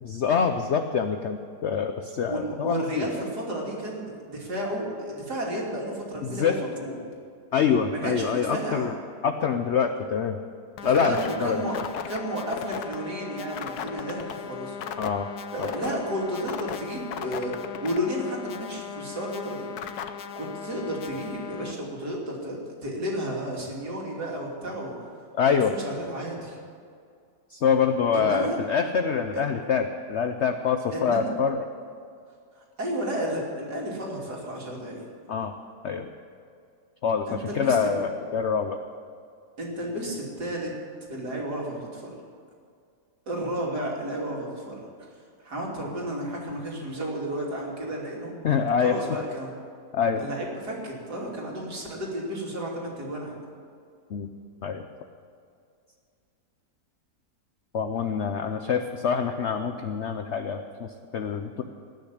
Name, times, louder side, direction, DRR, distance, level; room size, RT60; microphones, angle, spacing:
voice 1, 0.0-3.0 6.2-6.6 7.5-8.9 9.2-10.4 10.8-11.6 15.0-15.3 15.6-15.7 25.4-25.7 27.5-31.6 35.3-35.5 35.8-36.1 37.0-38.8 48.4-49.0 49.9-50.2 54.1-54.3 54.6-54.9 57.7-61.6, left 6 dB, 60° left, 7 dB, 0.8 m, -25 dB
voice 2, 2.3-6.9 7.9-8.9 10.9-11.7 12.1-14.8 15.5-19.7 20.3-25.0 25.5-26.6 28.1-28.6 29.3-29.4 30.9-31.4 32.6-35.0 37.3-37.9 39.6-40.7 41.1-42.1 43.3-44.9 45.4-48.4 48.8-49.5 50.2-53.4, right 1 dB, 75° right, -3 dB, 3.4 m, -32 dB
sound 1, 10.8-21.7, left 8 dB, 75° left, 1.3 m, -37 dB
19.0 x 6.6 x 10.0 m, 2.3 s
omnidirectional pair, 1.7 m